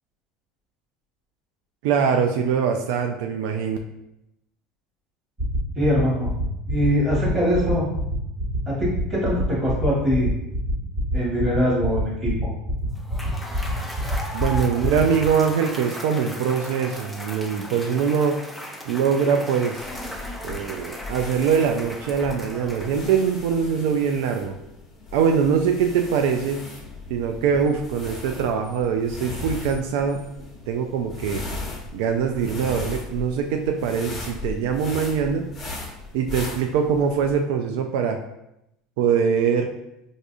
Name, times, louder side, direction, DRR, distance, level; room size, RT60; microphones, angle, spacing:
voice 1, 1.8-3.8 14.3-18.4 18.9-19.8 20.4-24.6 25.1-26.6 27.1-30.2 30.7-31.4 31.9-35.5 36.1-38.2 39.0-39.7, right 6 dB, 75° right, 4 dB, 0.3 m, -23 dB
sound 1, 5.4-15.3, right 1 dB, 30° right, 1.4 m, -26 dB
voice 2, 5.7-6.3 6.7-7.9 8.7-10.3 11.1-12.3, equal, 15° right, -6 dB, 1.5 m, -22 dB
Cheering / Applause / Crowd, 13.0-23.4, equal, 5° left, 0.4 m, -37 dB
sound 2, 19.8-37.4, left 3 dB, 20° left, 0.9 m, -37 dB
4.7 x 2.6 x 2.5 m, 0.85 s
supercardioid pair, 135°, 0 cm